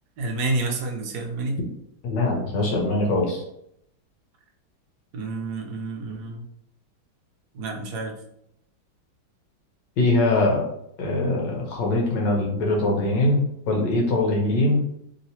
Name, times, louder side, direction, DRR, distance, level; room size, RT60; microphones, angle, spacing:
voice 1, 0.2-1.6 5.1-6.4 7.5-8.1, right 2 dB, 75° right, 1 dB, 0.9 m, -29 dB
voice 2, 2.0-3.4 10.0-10.7 11.0-14.8, left 2 dB, 70° left, 0 dB, 1.2 m, -22 dB
3.2 x 2.8 x 2.7 m, 0.76 s
omnidirectional pair, 2.2 m